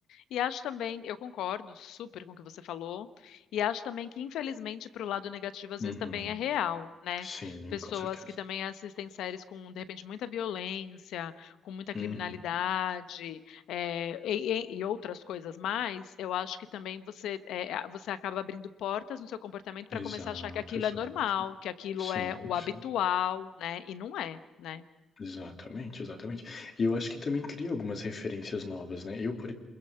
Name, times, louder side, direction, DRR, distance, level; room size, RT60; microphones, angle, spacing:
voice 1, 0.1-7.3 7.7-24.8, left 10 dB, 85° left, 12 dB, 1.1 m, -35 dB
voice 2, 5.8-6.3 7.2-8.4 11.9-12.4 19.9-21.2 22.0-22.8 25.2-29.5, left 3 dB, 40° left, 4 dB, 3.0 m, -36 dB
27.5 x 21.5 x 5.7 m, 1.2 s
cardioid pair, 105°, 0 cm